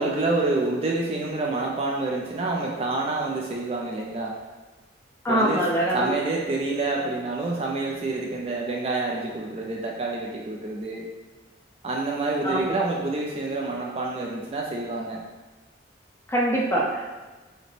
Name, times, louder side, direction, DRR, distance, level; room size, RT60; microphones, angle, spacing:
voice 1, 0.0-4.4 5.3-11.1 11.8-15.2, right 2 dB, 35° right, -2 dB, 0.4 m, -28 dB
voice 2, 5.2-6.1 12.4-12.8 16.3-17.1, right 1 dB, 15° left, -4 dB, 0.6 m, -24 dB
4.9 x 2.1 x 3.2 m, 1.2 s
head